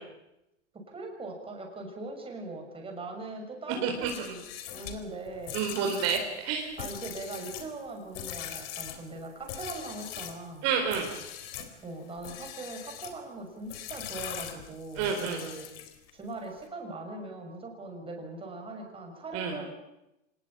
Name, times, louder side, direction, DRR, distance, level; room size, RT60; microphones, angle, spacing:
voice 1, 0.7-4.4 4.7-5.7 6.8-10.7 11.8-15.7 16.1-19.7, right 2 dB, 15° right, 2 dB, 6.5 m, -40 dB
sound 1, 4.0-10.4 10.9-11.7 12.2-13.2 13.7-16.1, left 10 dB, 55° left, 4.2 m, -41 dB
voice 2, 5.5-6.7 10.6-11.1 15.0-15.4 19.3-19.6, right 6 dB, 45° right, 3 dB, 4.4 m, -29 dB
26.5 x 19.5 x 8.8 m, 0.92 s
hypercardioid pair, 130°, 36 cm